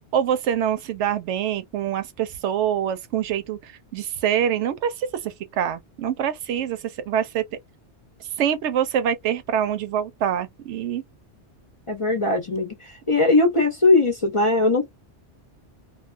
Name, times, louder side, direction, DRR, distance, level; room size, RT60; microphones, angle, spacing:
voice 1, 0.1-7.6 8.4-11.0, right 9 dB, 80° right, 0.9 m, -25 dB
voice 2, 11.9-12.8 13.1-14.9, left 2 dB, 35° left, 0.6 m, -19 dB
2.3 x 2.2 x 2.4 m
omnidirectional pair, 1.2 m